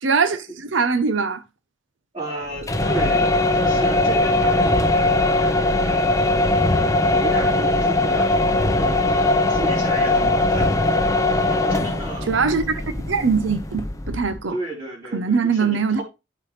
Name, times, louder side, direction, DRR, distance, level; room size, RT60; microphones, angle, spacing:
voice 1, 0.0-1.4 12.3-14.6 15.1-16.0, right 5 dB, 75° right, 0.7 m, -22 dB
voice 2, 2.1-3.3 3.5-6.3 7.0-10.7 11.5-12.3 14.5-16.0, right 1 dB, 25° right, 4.0 m, -32 dB
sound 1, 2.6-14.4, left 2 dB, 15° left, 0.8 m, -20 dB
12.5 x 4.7 x 3.2 m
head